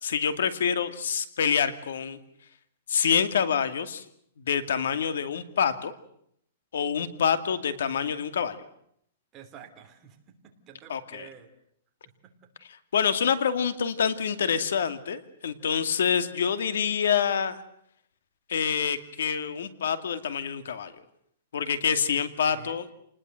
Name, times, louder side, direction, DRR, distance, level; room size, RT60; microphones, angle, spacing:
voice 1, 0.0-2.2 2.9-4.0 4.4-5.9 6.7-8.6 10.9-11.3 12.7-17.6 18.5-20.9 21.5-22.9, left 7 dB, 85° left, 11 dB, 2.4 m, -26 dB
voice 2, 9.3-10.2 10.4-11.5 22.5-22.7, right 8 dB, 20° right, 5 dB, 3.0 m, -49 dB
29.0 x 20.0 x 7.8 m, 0.69 s
hypercardioid pair, 165°, 0 cm